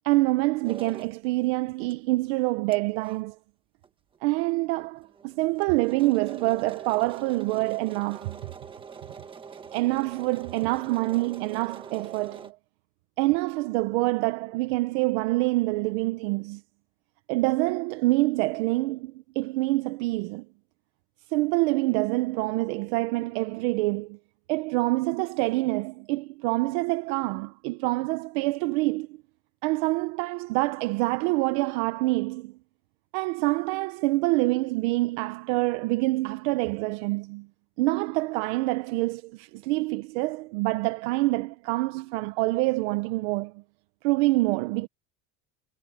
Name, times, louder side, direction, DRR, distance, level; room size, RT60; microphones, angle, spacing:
voice 1, 0.0-3.4 4.2-8.4 9.7-12.6 13.2-16.6 17.3-20.5 21.3-24.2 24.5-29.2 29.6-32.5 33.1-37.5 37.8-43.6 44.0-44.9, right 21 dB, 70° right, 0.9 m, -26 dB
sound 1, 0.6-1.1 1.9-2.0 2.3-2.4 2.7-2.8 3.0-3.2 3.8-3.9 4.1-4.2 4.6-4.7 5.0-12.5, right 6 dB, 15° right, 1.5 m, -44 dB
cardioid pair, 175°, 34 cm